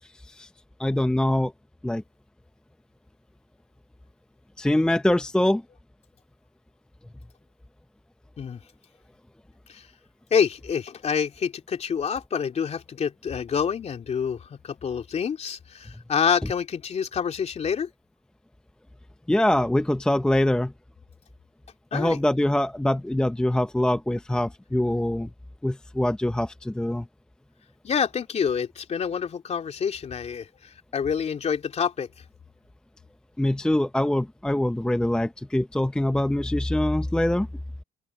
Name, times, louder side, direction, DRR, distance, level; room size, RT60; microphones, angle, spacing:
voice 1, 0.8-1.5 1.8-2.0 4.6-5.6 19.3-20.7 21.9-25.3 25.6-27.1 33.4-37.5, left 1 dB, 5° left, 0.6 m, -24 dB
voice 2, 10.3-17.9 21.9-22.2 27.8-30.5 30.9-32.1, left 7 dB, 40° left, 3.0 m, -27 dB
open air
cardioid pair, 110°, 17 cm